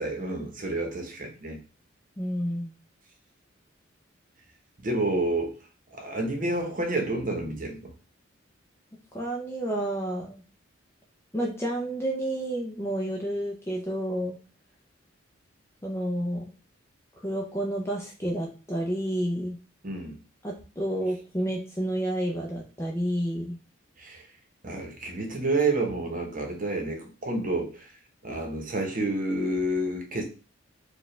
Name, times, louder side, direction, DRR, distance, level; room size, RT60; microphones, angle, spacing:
voice 1, 0.0-1.6 4.8-5.5 5.9-7.9 19.8-20.2 24.0-24.3 24.6-27.9 28.2-30.2, right 2 dB, 45° right, 3 dB, 0.9 m, -29 dB
voice 2, 2.2-2.7 9.1-10.4 11.3-14.4 15.8-16.5 17.2-19.6 20.4-23.6, right 1 dB, 15° left, -2 dB, 0.5 m, -30 dB
4.6 x 2.4 x 3.2 m, 0.34 s
head